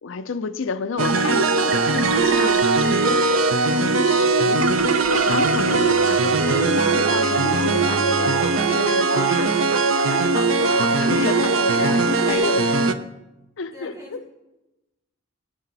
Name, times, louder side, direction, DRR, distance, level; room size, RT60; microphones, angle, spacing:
voice 1, 0.0-3.0 3.6-4.7 5.1-8.4 8.7-9.5 9.8-12.7 13.6-14.2, left 4 dB, 70° left, 10 dB, 0.6 m, -30 dB
sound 1, 1.0-12.9, right 3 dB, 90° right, 0.8 m, -20 dB
voice 2, 2.3-2.6 11.7-13.0 13.7-14.3, left 1 dB, 15° right, -3 dB, 3.5 m, -40 dB
Bowed string instrument, 5.0-8.6, right 1 dB, 25° left, 1.1 m, -35 dB
Dog, 6.5-12.3, right 2 dB, 55° right, 1.0 m, -30 dB
19.0 x 9.6 x 4.1 m, 1.0 s
head